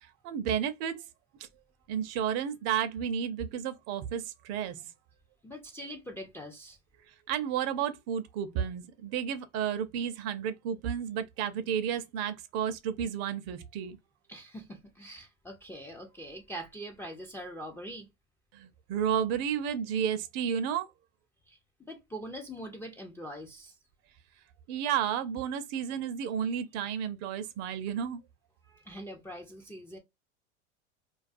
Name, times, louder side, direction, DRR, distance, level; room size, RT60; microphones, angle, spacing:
voice 1, 0.0-1.0 1.9-4.8 7.3-14.0 18.5-20.9 24.7-28.2, right 8 dB, 45° right, 0.5 m, -32 dB
voice 2, 5.4-6.8 14.3-18.1 21.5-23.8 28.7-30.0, equal, 5° left, 0.3 m, -43 dB
2.3 x 2.3 x 2.4 m
hypercardioid pair, 105°, 35 cm